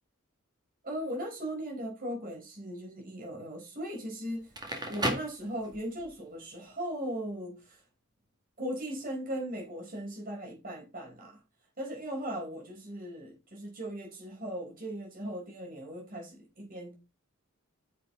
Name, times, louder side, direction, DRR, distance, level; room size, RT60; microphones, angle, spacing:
voice 1, 0.8-4.5 4.9-7.8 8.6-11.4 11.8-16.9, equal, 40° right, 4.5 m, -38 dB
Crackle, 4.4-6.1, right 1 dB, 20° right, 2.0 m, -34 dB
9.8 x 6.9 x 3.8 m
head